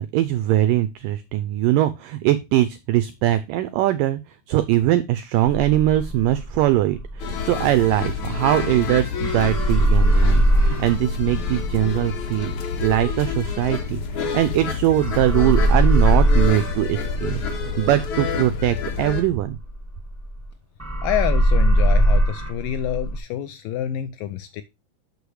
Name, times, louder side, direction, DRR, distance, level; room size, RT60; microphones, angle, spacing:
voice 1, 0.0-4.2 4.5-12.5 12.8-17.4 17.8-19.6, right 14 dB, 85° right, 1.9 m, -21 dB
sound 1, 5.5-8.9 9.2-14.7 15.0-20.5 20.8-23.2, right 1 dB, 10° right, 0.7 m, -21 dB
sound 2, 7.2-19.2, left 6 dB, 55° left, 2.5 m, -29 dB
voice 2, 21.0-24.6, left 11 dB, 85° left, 2.0 m, -27 dB
6.9 x 6.7 x 4.7 m
omnidirectional pair, 4.5 m